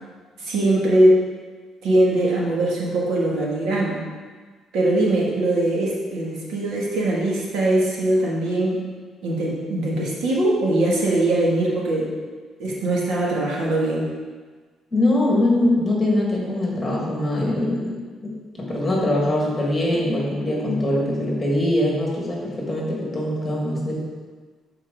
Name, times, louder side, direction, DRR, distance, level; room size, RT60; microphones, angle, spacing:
voice 1, 0.4-1.2 1.8-4.0 4.7-8.8 9.2-12.1 12.6-14.1, right 1 dB, 70° right, -4 dB, 2.0 m, -21 dB
voice 2, 14.9-17.9 18.2-18.3 18.6-24.0, left 1 dB, 15° left, -3 dB, 1.7 m, -22 dB
12.0 x 4.5 x 3.8 m, 1.4 s
cardioid pair, 155°, 0 cm